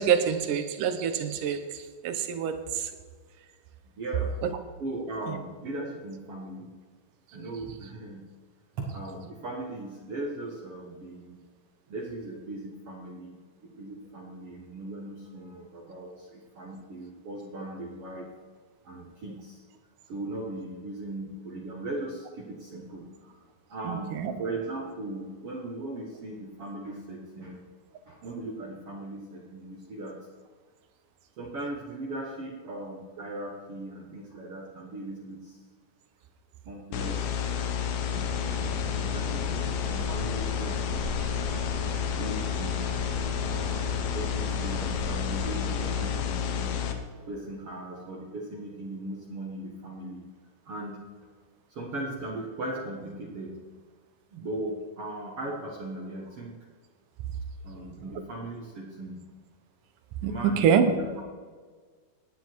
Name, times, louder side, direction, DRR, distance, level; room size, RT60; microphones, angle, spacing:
voice 1, 0.0-2.9 4.4-4.5 5.3-5.4 23.8-24.3 60.2-60.9, right 8 dB, 70° right, 8 dB, 2.4 m, -26 dB
voice 2, 4.0-4.3 4.8-6.7 7.3-8.2 8.8-11.4 11.9-18.3 18.8-19.6 20.1-23.4 23.7-27.6 28.1-30.2 31.4-35.6 36.7-41.1 42.2-43.0 43.5-46.8 47.1-50.2 50.7-51.0 51.7-53.6 54.3-56.5 57.6-59.2 60.2-61.1, right 2 dB, 50° right, -2 dB, 1.9 m, -38 dB
sound 1, 36.9-46.9, left 8 dB, 75° left, 2.8 m, -30 dB
sound 2, 38.3-46.2, right 1 dB, 90° right, 3.8 m, -39 dB
17.5 x 10.0 x 4.6 m, 1.5 s
omnidirectional pair, 4.4 m